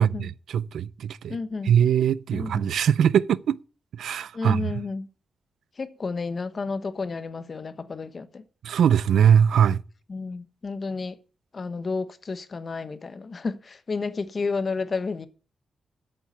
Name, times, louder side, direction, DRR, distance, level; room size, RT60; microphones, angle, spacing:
voice 1, 0.0-1.4 1.7-3.6 4.0-4.7 8.6-9.8, right 8 dB, 85° right, 0.4 m, -21 dB
voice 2, 1.3-1.8 2.3-2.7 4.3-5.1 5.8-8.4 10.1-11.2 11.5-15.3, left 4 dB, 45° left, 1.1 m, -31 dB
8.5 x 7.8 x 8.3 m
cardioid pair, 90°, 0 cm